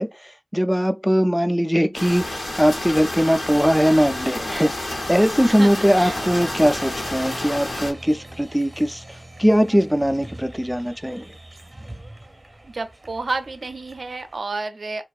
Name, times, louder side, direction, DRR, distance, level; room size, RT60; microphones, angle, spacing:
voice 1, 0.0-11.2, equal, ahead, 0.3 m, -20 dB
sound 1, 1.9-7.9, left 1 dB, 90° left, 1.0 m, -30 dB
Applause, 6.0-14.4, right 1 dB, 35° right, 0.7 m, -41 dB
voice 2, 12.6-15.1, right 3 dB, 70° right, 0.4 m, -30 dB
2.5 x 2.4 x 2.3 m
wide cardioid pair, 45°, 0 cm